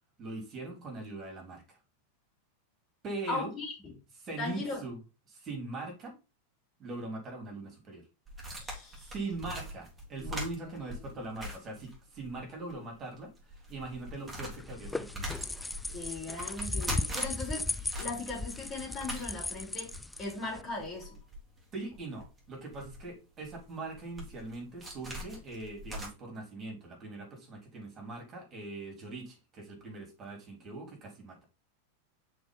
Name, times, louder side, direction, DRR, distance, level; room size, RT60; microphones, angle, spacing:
voice 1, 0.2-1.8 3.0-3.5 4.2-5.0 5.3-6.1 6.8-8.0 9.0-15.4 21.7-31.4, right 2 dB, 30° right, 3.5 m, -41 dB
voice 2, 3.3-3.9 4.4-4.8 8.5-9.1 10.2-10.3 15.9-19.9 20.2-21.1, left 3 dB, 30° left, 3.7 m, -38 dB
sound 1, 8.3-12.4 12.7-12.8 13.3-26.1, equal, 10° right, 3.5 m, -42 dB
sound 2, 14.6-20.6, left 2 dB, 10° left, 0.4 m, -37 dB
6.2 x 4.8 x 4.0 m
figure-of-eight pair, 90°, 0 cm